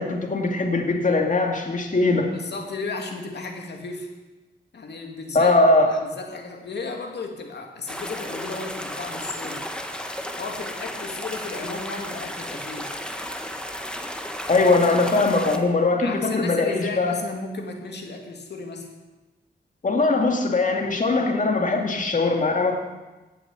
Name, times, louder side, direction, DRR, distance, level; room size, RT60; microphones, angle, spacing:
voice 1, 0.0-2.3 5.3-5.9 14.5-17.2 19.8-22.8, left 3 dB, 45° left, 2 dB, 2.3 m, -21 dB
voice 2, 2.3-4.1 4.7-5.6 5.9-9.7 10.3-12.9 16.0-18.9, left 3 dB, 75° left, 3 dB, 2.5 m, -34 dB
sound 1, 7.9-15.6, equal, 5° left, 1.5 m, -34 dB
17.0 x 8.0 x 8.1 m, 1.1 s
wide cardioid pair, 85°, 18 cm